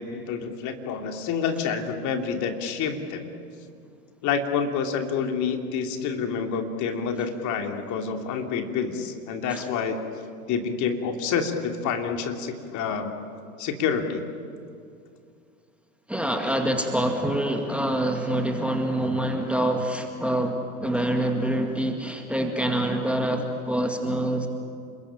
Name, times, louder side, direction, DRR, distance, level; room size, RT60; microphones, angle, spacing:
voice 1, 0.0-3.3 4.2-10.0 10.5-13.1 13.6-14.2, left 6 dB, 40° left, 4 dB, 3.0 m, -28 dB
voice 2, 16.1-24.5, right 1 dB, 5° right, 4 dB, 2.0 m, -26 dB
30.0 x 21.5 x 9.0 m, 2.4 s
hypercardioid pair, 100°, 46 cm